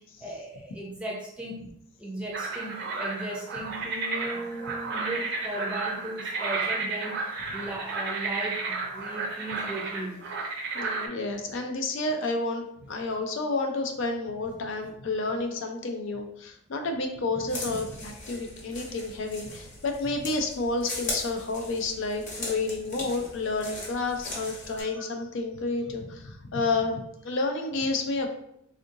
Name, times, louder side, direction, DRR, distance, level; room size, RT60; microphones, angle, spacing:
voice 1, 0.0-1.6 2.0-10.2, right 2 dB, 5° right, -3 dB, 0.5 m, -37 dB
sound 1, 2.3-11.1, right 3 dB, 55° right, 0.6 m, -32 dB
voice 2, 10.7-28.3, left 3 dB, 60° left, 4 dB, 0.4 m, -30 dB
sound 2, 17.5-24.8, left 2 dB, 35° left, 1.0 m, -39 dB
3.6 x 2.5 x 2.6 m, 0.75 s
head